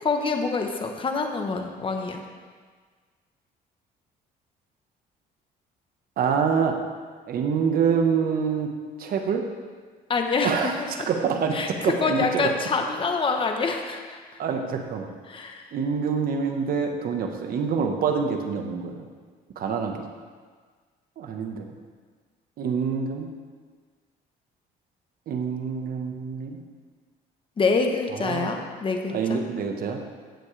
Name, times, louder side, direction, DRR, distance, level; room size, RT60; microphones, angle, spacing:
voice 1, 0.0-2.2 10.1-10.9 11.5-14.2 15.3-15.7 27.6-29.4, left 4 dB, 30° left, 3 dB, 1.1 m, -26 dB
voice 2, 6.2-6.8 7.3-8.7 9.0-9.4 10.4-12.5 14.4-15.1 15.7-19.1 19.6-20.0 21.2-21.7 22.6-23.3 25.3-26.6 28.2-28.6 29.1-30.0, right 6 dB, 60° right, 4 dB, 1.3 m, -26 dB
15.5 x 7.3 x 3.4 m, 1.5 s
cardioid pair, 110°, 17 cm